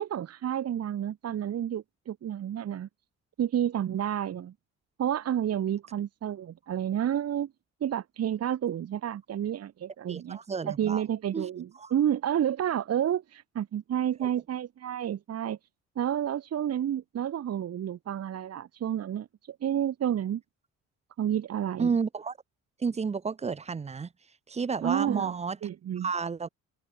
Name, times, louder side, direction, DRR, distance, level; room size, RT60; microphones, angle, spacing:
voice 1, 0.0-2.9 3.4-4.5 5.0-7.5 7.8-10.4 10.7-15.6 16.0-20.4 21.2-21.9 24.8-25.3 25.6-26.1, right 10 dB, 55° right, 1.3 m, -30 dB
voice 2, 10.1-11.0 11.3-11.5 11.8-11.9 14.2-14.3 21.8-22.4 22.8-24.1 24.5-25.6 26.0-26.5, right 5 dB, 20° right, 0.5 m, -31 dB
cardioid pair, 90°, 30 cm